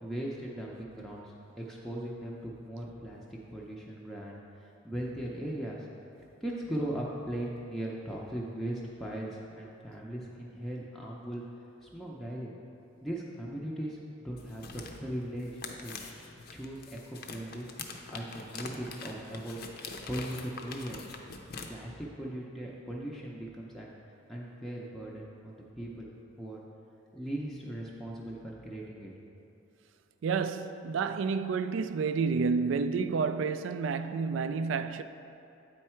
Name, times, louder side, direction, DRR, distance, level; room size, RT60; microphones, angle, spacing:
voice 1, 0.0-3.2 3.5-4.4 4.8-5.9 6.4-11.4 11.8-12.5 13.0-14.0 14.2-19.6 20.1-21.1 21.7-23.9 24.3-26.1 26.4-26.6 27.1-29.1, right 1 dB, ahead, 0.5 m, -39 dB
sound 1, 14.3-21.7, left 4 dB, 50° left, 0.5 m, -44 dB
voice 2, 30.2-35.0, right 5 dB, 75° right, 0.3 m, -30 dB
8.4 x 4.6 x 4.4 m
head